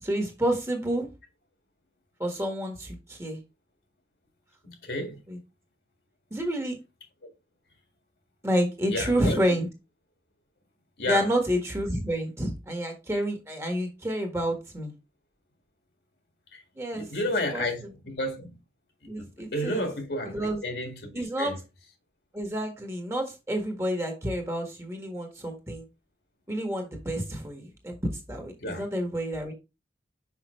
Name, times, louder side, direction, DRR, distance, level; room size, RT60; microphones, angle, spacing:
voice 1, 0.0-1.1 2.2-3.4 5.3-5.4 6.3-6.8 8.4-9.7 11.0-14.9 16.8-17.1 17.5-17.6 19.0-19.9 20.2-20.6 21.1-21.5 22.3-25.9 26.5-28.0 28.3-29.5, equal, 15° right, 1.5 m, -29 dB
voice 2, 4.6-5.2 8.9-9.4 11.0-11.3 16.5-16.6 16.9-18.5 19.2-21.6 28.6-28.8, left 1 dB, 65° left, 1.9 m, -32 dB
5.8 x 5.6 x 3.1 m
head